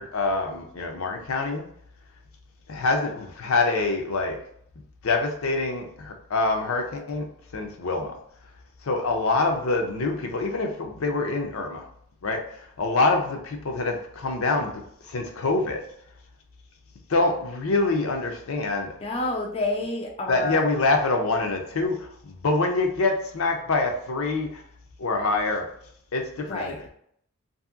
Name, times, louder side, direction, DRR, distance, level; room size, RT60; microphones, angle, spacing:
voice 1, 0.0-1.7 2.7-4.4 5.0-7.3 7.5-8.2 8.8-11.9 12.2-15.8 17.1-18.9 20.3-24.6 25.0-25.7 26.1-26.9, left 3 dB, 80° left, 3 dB, 0.6 m, -25 dB
voice 2, 19.0-20.7 26.5-26.8, left 2 dB, 25° left, 0 dB, 0.3 m, -29 dB
2.7 x 2.6 x 2.4 m, 0.68 s
head